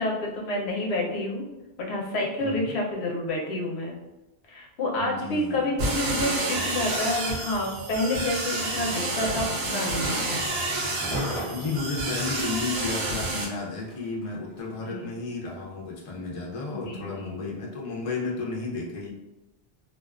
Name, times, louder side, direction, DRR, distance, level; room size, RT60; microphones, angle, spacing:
voice 1, 0.0-1.4 1.8-4.0 4.5-10.4 14.8-15.1 16.8-17.4, left 1 dB, 85° left, -1 dB, 0.9 m, -29 dB
voice 2, 2.4-2.8 4.9-5.6 11.5-19.1, left 3 dB, 40° left, -2 dB, 0.5 m, -33 dB
sound 1, 5.8-13.4, right 2 dB, 75° right, 0.8 m, -29 dB
Skateboard, 6.1-14.9 15.5-15.6, equal, 10° left, 0.9 m, -40 dB
2.4 x 2.2 x 2.3 m, 0.99 s
omnidirectional pair, 1.1 m